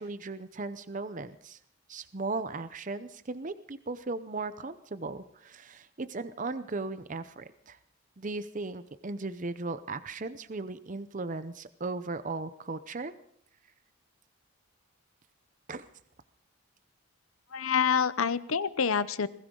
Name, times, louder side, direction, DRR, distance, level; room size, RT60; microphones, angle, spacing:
voice 1, 0.0-1.6 1.9-7.8 8.2-13.1 15.7-15.8, right 3 dB, 35° right, 12 dB, 0.7 m, -37 dB
voice 2, 17.5-19.3, left 6 dB, 75° left, 15 dB, 0.8 m, -27 dB
20.5 x 17.0 x 3.8 m, 0.66 s
head